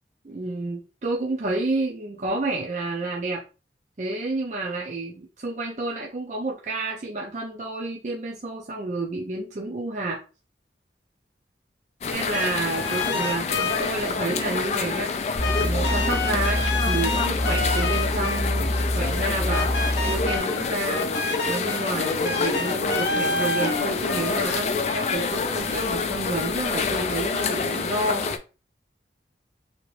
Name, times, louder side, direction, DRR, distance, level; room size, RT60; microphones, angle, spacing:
voice 1, 0.2-3.4 4.0-10.2 12.1-15.1 15.6-19.7 20.0-21.1 21.4-28.3, right 2 dB, 40° right, -1 dB, 0.5 m, -30 dB
sound 1, 12.0-28.4, left 4 dB, 35° left, 0.3 m, -27 dB
sound 2, 12.1-14.0 15.4-18.8 19.5-24.4, left 3 dB, 85° left, 0.6 m, -29 dB
sound 3, 15.4-20.4, left 1 dB, ahead, 0.7 m, -26 dB
2.9 x 2.5 x 3.1 m, 0.32 s
head